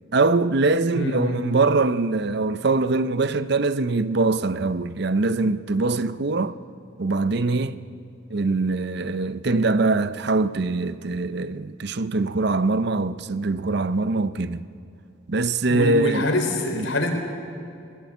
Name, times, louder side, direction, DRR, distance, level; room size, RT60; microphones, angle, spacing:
voice 1, 0.1-6.6 7.0-7.8 8.3-14.6 15.3-16.3 16.7-16.9, right 3 dB, 55° right, 0.6 m, -23 dB
voice 2, 0.9-1.4 15.7-17.1, left 1 dB, 80° left, 3.6 m, -25 dB
20.5 x 17.0 x 8.5 m
head